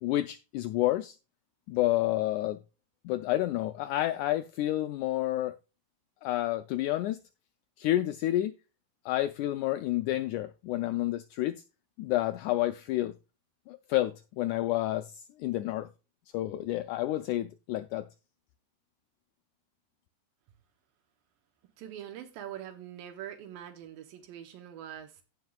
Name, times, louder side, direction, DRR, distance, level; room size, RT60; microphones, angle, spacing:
voice 1, 0.0-1.2 1.7-2.6 3.0-5.5 6.2-7.2 7.8-8.5 9.0-11.6 12.0-13.1 13.7-15.9 16.3-18.1, left 15 dB, 90° left, 1.7 m, -29 dB
voice 2, 21.8-25.2, right 10 dB, 85° right, 2.6 m, -43 dB
16.5 x 5.5 x 2.3 m
omnidirectional pair, 4.0 m